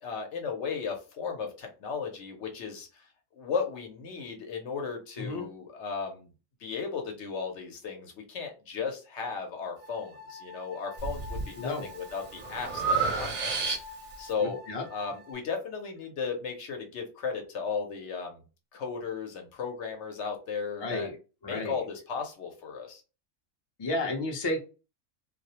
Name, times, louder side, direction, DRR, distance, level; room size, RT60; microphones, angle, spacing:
voice 1, 0.0-3.1 3.3-6.3 6.6-13.5 14.2-14.6 14.9-18.4 18.7-21.1 21.4-23.0, left 5 dB, 65° left, 3 dB, 0.9 m, -35 dB
sound 1, 9.8-15.3, left 3 dB, 90° right, 1.0 m, -48 dB
Breathing, 11.0-11.5 11.9-14.2, right 4 dB, 45° right, 0.6 m, -30 dB
voice 2, 11.6-11.9 14.4-14.8 20.8-21.2 21.4-21.7 23.8-24.6, left 2 dB, 30° left, 1 dB, 0.5 m, -32 dB
2.3 x 2.0 x 2.8 m, 0.32 s
omnidirectional pair, 1.3 m